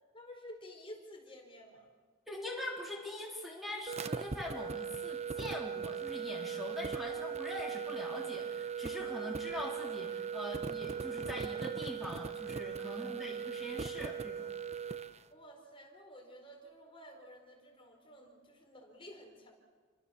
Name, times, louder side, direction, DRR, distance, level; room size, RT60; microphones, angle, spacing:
voice 1, 0.1-1.9 12.8-13.3 15.3-19.5, equal, 25° left, 2 dB, 4.6 m, -52 dB
voice 2, 2.3-14.5, left 1 dB, ahead, -2 dB, 3.7 m, -43 dB
sound 1, 3.9-15.2, right 6 dB, 35° right, 0.9 m, -39 dB
29.0 x 24.5 x 7.1 m, 1.5 s
head